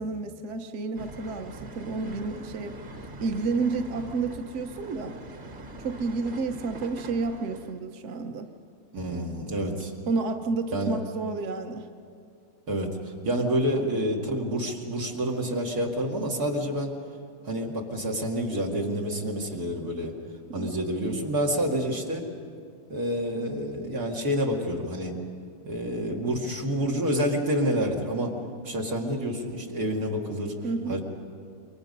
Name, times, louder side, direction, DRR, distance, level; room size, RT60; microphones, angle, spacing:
voice 1, 0.0-2.8 3.2-5.2 5.8-8.5 10.1-11.9 13.7-13.8 20.5-20.8 30.6-31.0, right 4 dB, 55° right, 6 dB, 1.3 m, -30 dB
sound 1, 1.0-7.8, right 1 dB, 35° right, 1.3 m, -43 dB
voice 2, 8.9-9.9 10.7-11.0 12.7-16.9 17.4-20.1 20.5-22.3 22.9-25.1 25.7-28.4 28.6-30.5 30.9-31.0, equal, 90° right, -1 dB, 2.9 m, -28 dB
28.0 x 23.0 x 5.4 m, 2.3 s
omnidirectional pair, 1.6 m